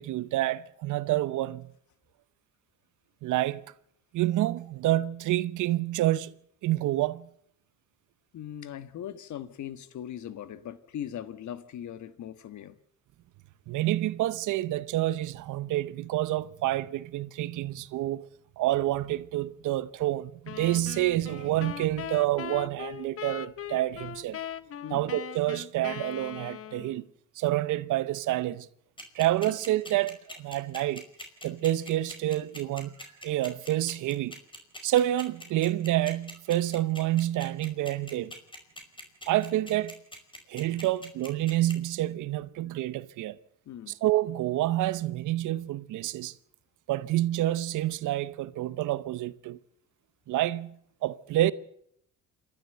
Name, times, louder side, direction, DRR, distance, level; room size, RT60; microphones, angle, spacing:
voice 1, 0.0-1.7 3.2-3.6 4.1-6.4 6.6-7.3 13.7-18.3 18.6-24.4 24.9-27.0 27.4-28.7 29.1-31.0 31.4-32.9 33.2-34.3 34.8-38.3 39.3-40.0 40.5-43.4 44.0-46.3 46.9-49.6 50.3-51.5, right 15 dB, 85° right, 0.9 m, -28 dB
voice 2, 8.3-12.8 24.8-25.0 29.5-29.6 43.6-44.0, left 10 dB, 70° left, 1.5 m, -40 dB
sound 1, 20.5-27.0, left 9 dB, 50° left, 0.9 m, -40 dB
sound 2, 29.0-41.7, left 1 dB, 15° left, 5.2 m, -42 dB
28.0 x 12.0 x 8.0 m
cardioid pair, 90°, 30 cm